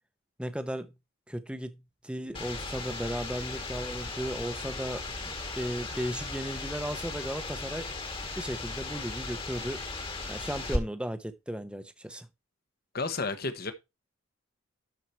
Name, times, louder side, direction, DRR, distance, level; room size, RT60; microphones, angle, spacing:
voice 1, 0.4-0.9 1.3-1.8 2.0-7.9 8.4-9.8 10.3-12.3, equal, 5° right, 0.9 m, -35 dB
sound 1, 2.3-10.8, left 2 dB, 25° left, 1.7 m, -37 dB
voice 2, 12.9-13.7, left 3 dB, 45° left, 1.4 m, -31 dB
12.5 x 4.9 x 4.5 m
head